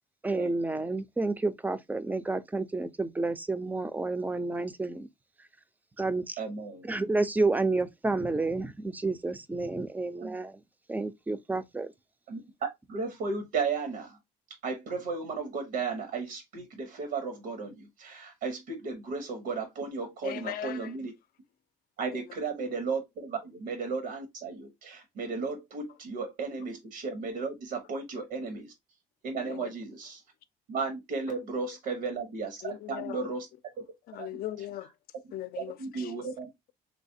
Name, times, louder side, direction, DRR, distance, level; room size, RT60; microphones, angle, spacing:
voice 1, 0.2-5.1 6.0-6.4 6.8-10.6 10.9-11.9, right 3 dB, 10° right, 0.4 m, -30 dB
voice 2, 6.4-6.9 10.2-10.3 12.3-12.4 12.9-14.2 14.6-21.1 22.0-28.7 29.2-30.2 30.7-33.5 33.8-33.9 34.2-34.3 35.8-36.5, right 4 dB, 80° right, 1.0 m, -34 dB
voice 3, 20.2-20.9 22.1-22.3 29.4-29.7 32.6-33.3 34.1-34.9 35.3-36.2, left 13 dB, 65° left, 0.4 m, -39 dB
3.2 x 3.2 x 2.6 m
cardioid pair, 110°, 17 cm